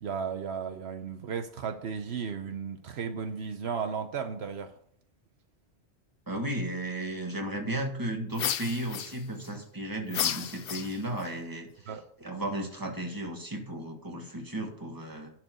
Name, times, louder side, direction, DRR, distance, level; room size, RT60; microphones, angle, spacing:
voice 1, 0.0-4.7 11.9-12.0, right 6 dB, 70° right, 1.0 m, -34 dB
voice 2, 6.3-11.9 12.2-15.3, right 1 dB, 20° right, 1.7 m, -34 dB
sound 1, 8.3-9.5 10.1-11.3, left 9 dB, 60° left, 0.7 m, -32 dB
11.0 x 4.6 x 7.9 m
omnidirectional pair, 1.1 m